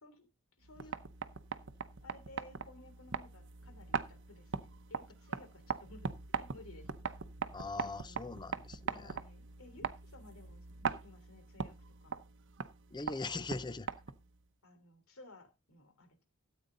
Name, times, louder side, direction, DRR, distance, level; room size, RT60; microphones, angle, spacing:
voice 1, 0.6-1.0 2.0-6.9 7.7-8.4 8.9-12.1 14.6-16.2, left 2 dB, 75° left, 3.2 m, -57 dB
sound 1, 0.6-14.4, right 5 dB, 60° right, 0.8 m, -41 dB
voice 2, 7.5-9.2 12.9-13.9, left 3 dB, 20° left, 0.6 m, -41 dB
13.5 x 8.8 x 3.9 m
head